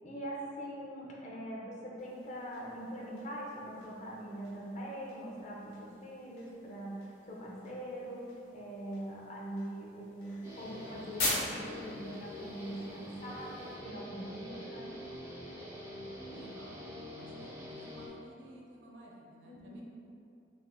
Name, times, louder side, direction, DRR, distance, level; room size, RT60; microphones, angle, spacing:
voice 1, 0.0-8.2 8.5-13.6 13.8-14.9 19.4-19.8, right 1 dB, 40° left, -4 dB, 0.6 m, -42 dB
sound 1, 2.0-13.8, left 1 dB, 65° left, 1.1 m, -43 dB
Guitar, 10.4-18.1, left 1 dB, 15° right, 0.4 m, -45 dB
voice 2, 16.3-17.5 17.8-19.8, right 1 dB, 80° right, -3 dB, 0.6 m, -54 dB
3.3 x 2.1 x 3.6 m, 2.6 s
head